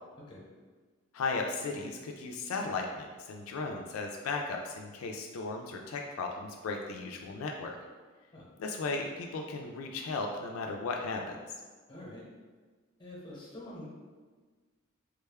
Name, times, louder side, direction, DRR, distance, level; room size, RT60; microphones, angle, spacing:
voice 1, 1.1-7.8 8.6-11.6, left 3 dB, 80° left, 2 dB, 0.3 m, -36 dB
voice 2, 11.9-12.2 13.0-13.9, left 1 dB, 25° left, -4 dB, 0.8 m, -46 dB
3.5 x 2.2 x 3.4 m, 1.4 s
head